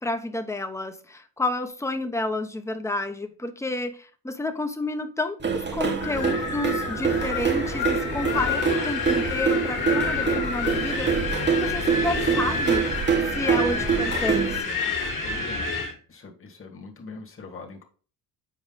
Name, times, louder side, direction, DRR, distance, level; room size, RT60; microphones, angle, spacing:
voice 1, 0.0-12.9 13.3-15.0, left 2 dB, 5° left, 0.9 m, -30 dB
sound 1, 5.4-14.6, right 6 dB, 25° right, 1.1 m, -26 dB
Wind, 6.0-15.9, left 4 dB, 50° left, 2.0 m, -29 dB
voice 2, 15.2-15.7 16.1-17.8, left 4 dB, 30° left, 1.7 m, -42 dB
7.4 x 4.8 x 3.9 m
cardioid pair, 100°, 40 cm